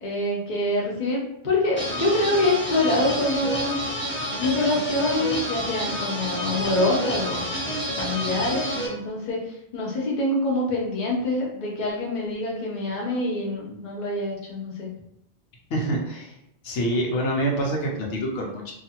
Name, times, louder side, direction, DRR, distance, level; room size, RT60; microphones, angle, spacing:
voice 1, 0.0-3.8 4.4-7.5 8.0-9.4 9.7-14.9, left 2 dB, 45° left, -3 dB, 0.8 m, -25 dB
sound 1, 1.8-8.9, equal, 15° left, 0.4 m, -29 dB
voice 2, 15.7-16.3 16.6-18.7, right 1 dB, 85° left, -2 dB, 1.0 m, -26 dB
2.8 x 2.5 x 2.8 m, 0.77 s
omnidirectional pair, 1.2 m